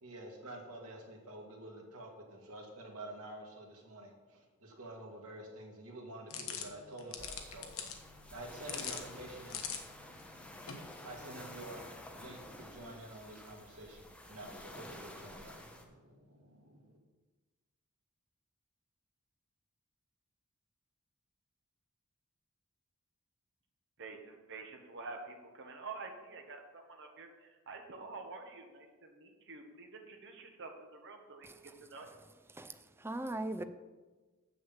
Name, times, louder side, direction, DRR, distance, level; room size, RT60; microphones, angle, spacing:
voice 1, 0.0-9.6 11.0-11.8 12.1-17.0, right 1 dB, 90° right, 1 dB, 2.1 m, -49 dB
sound 1, 6.3-11.5, left 7 dB, 70° left, 1.1 m, -45 dB
sound 2, 7.2-15.8, left 1 dB, 5° left, 1.0 m, -51 dB
voice 2, 24.0-31.5 31.8-32.1, right 3 dB, 60° right, 3 dB, 1.3 m, -48 dB
voice 3, 32.5-33.6, right 1 dB, 10° right, 11 dB, 0.4 m, -39 dB
7.4 x 6.5 x 7.2 m, 1.3 s
head